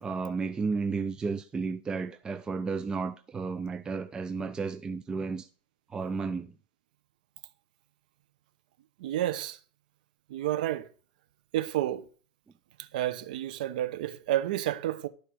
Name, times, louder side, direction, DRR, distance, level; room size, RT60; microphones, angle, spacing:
voice 1, 0.0-5.5 5.9-6.6, right 4 dB, 15° right, 0.5 m, -33 dB
voice 2, 9.0-9.6 10.3-10.9 11.5-12.1 12.8-15.1, right 13 dB, 75° right, 0.9 m, -30 dB
12.0 x 4.5 x 6.3 m
supercardioid pair, 125°, 5 cm